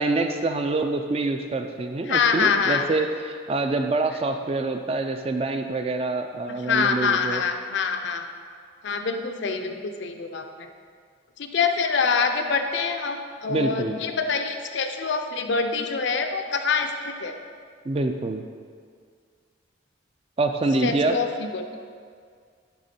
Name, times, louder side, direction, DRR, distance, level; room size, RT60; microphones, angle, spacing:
voice 1, 0.0-7.4 13.5-14.0 17.9-18.5 20.4-21.2, right 2 dB, 30° right, 6 dB, 0.3 m, -26 dB
voice 2, 2.1-2.8 6.6-8.3 8.8-10.7 11.4-17.4 20.8-21.3 21.5-21.6, left 5 dB, 65° left, 6 dB, 0.5 m, -25 dB
10.0 x 3.6 x 4.2 m, 2.1 s
head